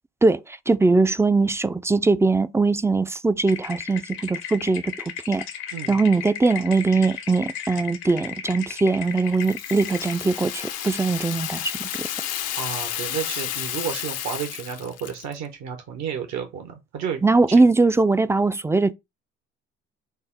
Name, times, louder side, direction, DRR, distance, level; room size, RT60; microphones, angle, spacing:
voice 1, 0.2-4.9 5.3-5.4 5.9-11.9 17.2-18.9, right 3 dB, 10° right, 0.3 m, -21 dB
sound 1, 3.5-10.2, left 9 dB, 75° left, 1.0 m, -35 dB
Rattle (instrument), 9.4-15.4, left 11 dB, 60° left, 0.6 m, -31 dB
voice 2, 12.5-17.2 17.5-17.6, right 7 dB, 65° right, 0.9 m, -31 dB
5.4 x 2.0 x 3.8 m
hypercardioid pair, 55°, 30 cm